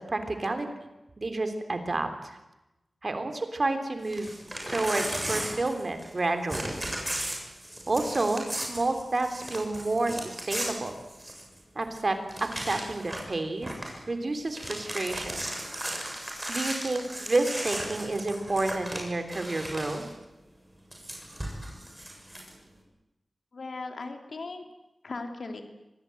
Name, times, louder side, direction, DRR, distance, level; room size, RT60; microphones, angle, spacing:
voice 1, 0.1-0.7 1.2-2.1 3.0-4.3 4.7-6.8 7.9-11.0 11.7-12.1 12.7-13.7 14.1-15.4 16.5-20.0, right 2 dB, 45° right, 7 dB, 3.4 m, -29 dB
Crumpling crinkling / Tearing, 4.0-6.2 6.5-11.6 11.9-12.0 12.3-13.3 13.6-14.0 14.3-20.1 20.9-22.5, right 1 dB, 15° right, 7.3 m, -36 dB
voice 2, 23.5-24.6 25.0-25.6, left 3 dB, 75° left, 5 dB, 3.0 m, -37 dB
25.5 x 19.0 x 9.1 m, 0.97 s
wide cardioid pair, 85°, 0 cm